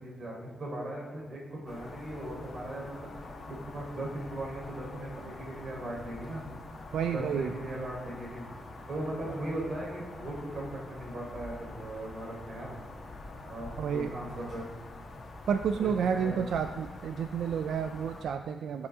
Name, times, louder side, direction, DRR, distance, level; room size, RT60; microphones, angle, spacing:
voice 1, 0.0-6.4 7.1-8.4 8.9-12.8 13.4-14.7 15.7-16.3, right 1 dB, 50° right, -2 dB, 4.0 m, -38 dB
sound 1, 1.7-18.2, left 2 dB, 45° left, 1.7 m, -46 dB
voice 2, 6.9-7.5 13.8-14.1 15.5-18.9, right 7 dB, 85° right, 8 dB, 0.4 m, -30 dB
18.5 x 8.0 x 3.7 m, 1.5 s
wide cardioid pair, 135°, 0 cm